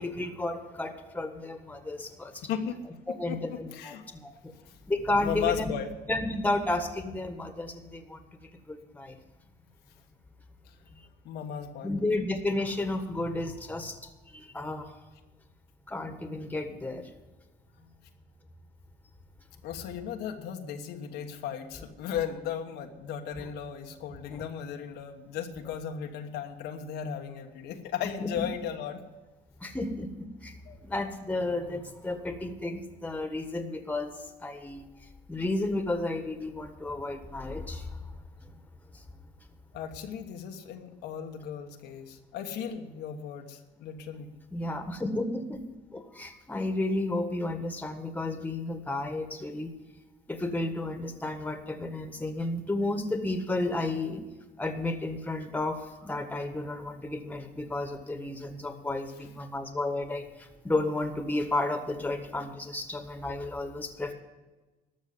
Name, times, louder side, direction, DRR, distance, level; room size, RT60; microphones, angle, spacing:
voice 1, 0.0-2.4 3.1-4.5 4.9-5.7 6.1-8.2 8.7-9.2 11.8-14.0 14.3-14.9 15.9-17.1 23.4-23.5 24.3-24.4 28.2-28.4 29.6-30.1 30.4-30.5 30.8-34.1 34.4-34.9 35.3-38.0 44.5-45.6 45.9-49.7 50.3-54.2 54.6-64.1, left 2 dB, 10° left, 7 dB, 1.5 m, -32 dB
voice 2, 2.4-2.8 3.3-4.1 5.2-5.9 10.6-10.7 11.2-11.9 19.6-29.0 30.7-30.8 39.7-44.3, left 8 dB, 85° left, 4 dB, 1.2 m, -36 dB
13.0 x 6.4 x 9.5 m, 1.2 s
cardioid pair, 110°, 17 cm